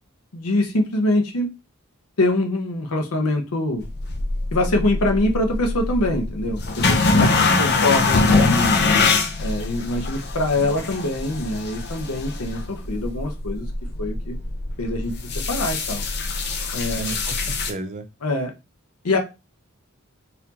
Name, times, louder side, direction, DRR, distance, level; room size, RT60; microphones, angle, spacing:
voice 1, 0.3-1.5 2.2-3.9 4.5-7.3 7.6-8.8 9.4-13.7 14.0-14.4 14.8-15.2 15.5-16.0 16.7-17.1 18.2-18.5 19.0-19.2, left 2 dB, 80° left, 0.8 m, -24 dB
sound 1, 3.8-17.7, left 3 dB, 50° left, 0.6 m, -23 dB
voice 2, 7.2-7.8 16.8-18.1, right 3 dB, 35° right, 0.5 m, -33 dB
4.1 x 2.7 x 2.8 m
head